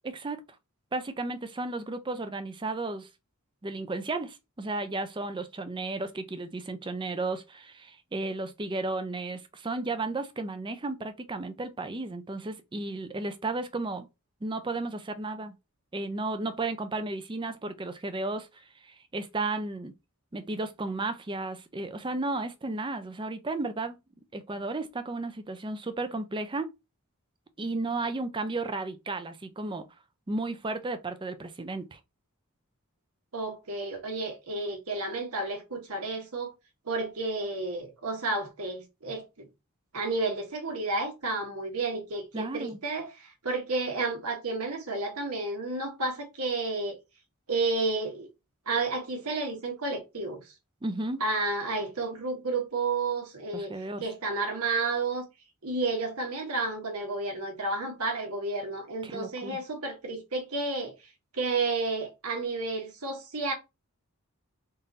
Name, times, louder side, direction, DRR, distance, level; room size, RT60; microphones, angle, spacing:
voice 1, 0.0-0.4 0.9-3.1 3.6-14.1 14.4-15.5 15.9-18.5 18.8-19.9 20.3-24.0 24.3-26.7 27.6-29.9 30.3-32.0 42.3-42.8 50.8-51.2 53.5-54.0 59.0-59.6, right 2 dB, 20° right, 0.5 m, -33 dB
voice 2, 33.3-36.5 36.8-39.5 39.9-47.0 47.5-48.3 48.7-50.4 51.2-53.8 54.0-55.2 55.6-60.9 61.3-63.5, right 3 dB, 85° right, 1.4 m, -31 dB
3.8 x 2.6 x 4.0 m
head